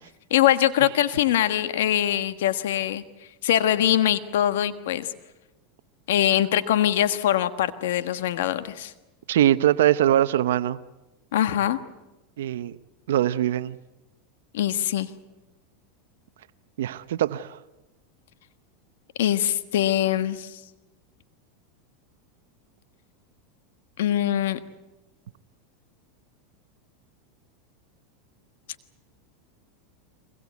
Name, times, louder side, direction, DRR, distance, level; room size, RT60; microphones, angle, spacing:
voice 1, 0.3-3.0 3.4-5.1 6.1-8.9 11.3-11.8 14.5-15.1 19.2-20.6 24.0-24.6, left 11 dB, 80° left, 12 dB, 1.4 m, -23 dB
voice 2, 9.3-10.8 12.4-12.8 13.1-13.8 16.8-17.6, right 12 dB, 85° right, 14 dB, 0.7 m, -22 dB
24.5 x 21.0 x 8.3 m, 1.0 s
supercardioid pair, 125°, 0 cm